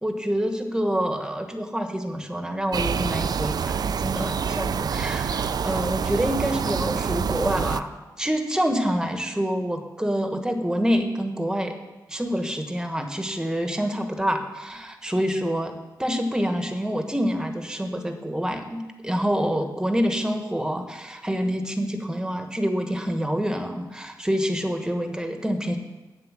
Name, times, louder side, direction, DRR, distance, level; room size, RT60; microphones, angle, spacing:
voice 1, 0.0-11.7 12.1-15.7 16.0-25.8, equal, 10° right, 6 dB, 1.3 m, -27 dB
sound 1, 2.7-7.8, right 6 dB, 65° right, 0.4 m, -26 dB
8.1 x 7.6 x 7.5 m, 1.2 s
wide cardioid pair, 85°, 7 cm